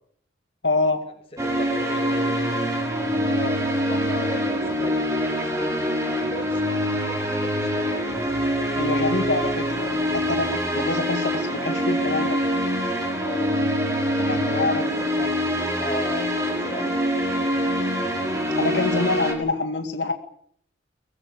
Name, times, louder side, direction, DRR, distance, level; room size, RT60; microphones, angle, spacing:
voice 1, 0.6-1.0 8.8-12.4 14.3-14.8 18.6-20.1, left 3 dB, 70° left, 6 dB, 2.2 m, -25 dB
voice 2, 1.3-2.6 3.1-8.2 13.2-17.0, left 1 dB, 30° left, 3 dB, 7.5 m, -37 dB
sound 1, 1.4-19.3, equal, 15° right, 6.1 m, -25 dB
24.0 x 20.0 x 8.6 m, 0.63 s
head